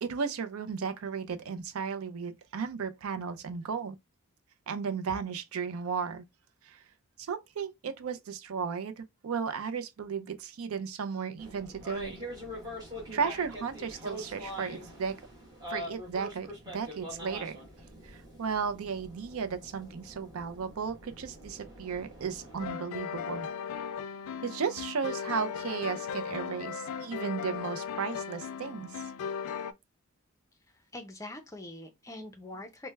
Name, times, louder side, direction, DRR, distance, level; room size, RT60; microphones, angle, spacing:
voice 1, 0.0-4.0 4.7-6.3 6.6-6.8 7.2-12.2 13.1-15.2 15.7-17.6 18.0-23.5 24.4-28.9, right 6 dB, 70° right, 0.4 m, -35 dB
sound 1, 11.4-22.7, equal, 20° right, 1.2 m, -44 dB
sound 2, 22.6-29.7, left 7 dB, 80° left, 0.3 m, -37 dB
voice 2, 30.9-32.9, left 2 dB, 15° left, 0.5 m, -43 dB
3.2 x 2.1 x 3.2 m
head